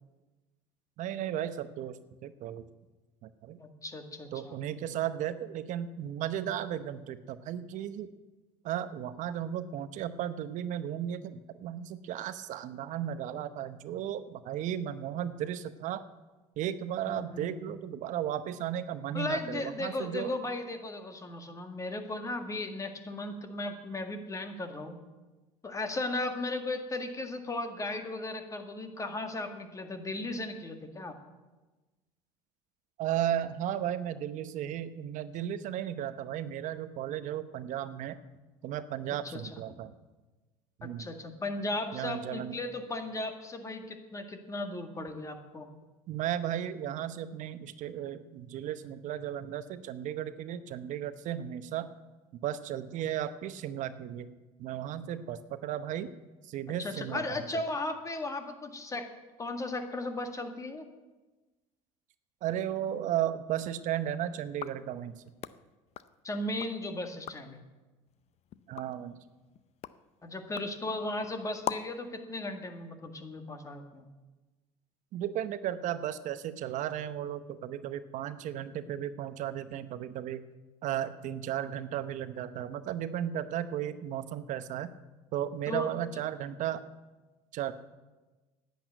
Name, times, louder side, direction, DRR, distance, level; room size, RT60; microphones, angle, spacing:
voice 1, 1.0-2.0 2.2-2.6 3.2-3.6 4.3-8.1 8.6-16.0 16.6-20.3 33.0-38.2 38.6-39.9 40.8-41.1 41.9-42.6 46.1-51.9 52.4-54.3 54.6-56.1 56.4-57.6 62.4-65.2 68.7-69.2 75.1-80.4 80.8-84.9 85.3-86.8 87.5-87.7, right 10 dB, 55° right, 12 dB, 0.8 m, -35 dB
voice 2, 3.6-4.6 17.1-17.6 19.1-25.0 25.6-31.1 39.2-39.4 39.7-39.8 40.8-45.7 56.8-59.1 59.4-60.9 66.2-67.6 70.2-74.1 85.7-85.9, left 2 dB, 20° left, 6 dB, 1.8 m, -36 dB
sound 1, 64.5-66.8 67.1-67.6 68.1-72.1, left 11 dB, 45° left, 0.6 m, -43 dB
10.5 x 8.5 x 9.2 m, 1.2 s
supercardioid pair, 95°, 15 cm